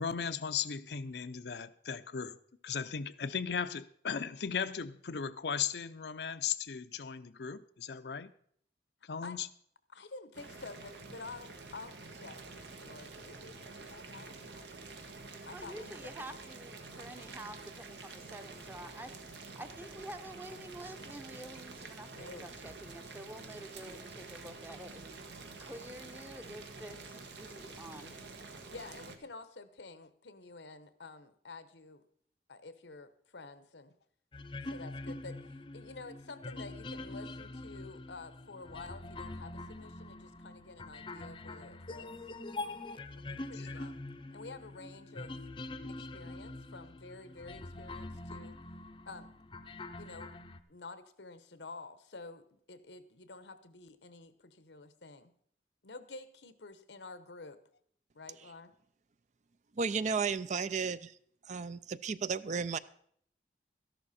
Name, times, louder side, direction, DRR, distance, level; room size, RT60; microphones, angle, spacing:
voice 1, 0.0-2.4 2.6-8.3 9.1-9.5 43.6-43.8, left 7 dB, 70° left, 0.6 m, -37 dB
voice 2, 9.9-14.7 15.5-16.1 22.2-22.5 28.7-32.1 32.5-33.9 34.6-42.1 43.1-44.0 44.3-45.5 45.9-48.6 49.1-49.3 50.0-50.3 50.7-55.3 55.8-57.6 58.1-58.7, left 3 dB, 90° left, 1.0 m, -49 dB
Boiling, 10.3-29.2, right 3 dB, 80° right, 1.5 m, -48 dB
voice 3, 15.5-25.1 25.6-28.2, right 1 dB, 10° right, 0.8 m, -48 dB
sound 1, 34.3-50.6, left 2 dB, 30° left, 0.6 m, -44 dB
voice 4, 59.8-61.2 61.5-62.8, right 5 dB, 40° right, 0.4 m, -33 dB
13.5 x 11.5 x 4.2 m
head